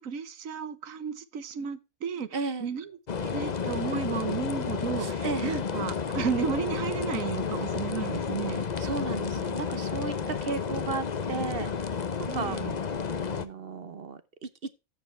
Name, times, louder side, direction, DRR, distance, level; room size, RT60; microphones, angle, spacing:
voice 1, 0.0-2.3 2.6-2.9 3.2-8.6 12.3-12.8, right 7 dB, 70° right, 1.4 m, -33 dB
voice 2, 2.3-2.7 5.0-5.6 8.8-12.8 13.3-14.7, right 4 dB, 45° right, 1.0 m, -35 dB
sound 1, 3.1-13.5, left 6 dB, 40° left, 0.7 m, -31 dB
13.5 x 6.9 x 3.2 m
omnidirectional pair, 1.5 m